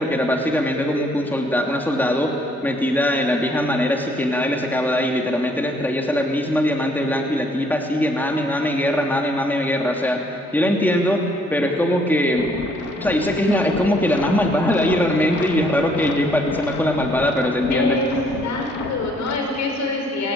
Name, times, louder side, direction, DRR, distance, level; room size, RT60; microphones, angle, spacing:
voice 1, 0.0-2.3 2.6-11.2 11.5-12.5 13.0-18.0, left 1 dB, 5° left, 1 dB, 2.9 m, -21 dB
sound 1, 12.4-19.4, left 6 dB, 85° left, 2.4 m, -32 dB
voice 2, 17.7-18.1 18.4-20.3, left 3 dB, 70° left, 2 dB, 6.1 m, -25 dB
30.0 x 18.5 x 8.9 m, 2.9 s
cardioid pair, 90°, 30 cm